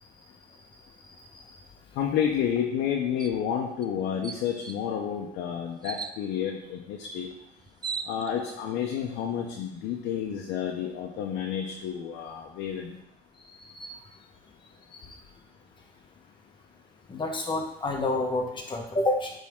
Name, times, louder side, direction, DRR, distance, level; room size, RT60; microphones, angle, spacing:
voice 1, 2.0-7.3 8.1-12.9, left 8 dB, 85° left, 0 dB, 0.8 m, -30 dB
sound 1, 3.2-3.4 3.8-3.9 4.2-4.8 5.8-6.2 7.3-7.4 7.6-8.6, right 5 dB, 25° right, 0.4 m, -36 dB
voice 2, 17.1-19.3, left 2 dB, 30° left, 1 dB, 1.3 m, -29 dB
8.5 x 3.7 x 3.7 m, 0.80 s
cardioid pair, 110°, 17 cm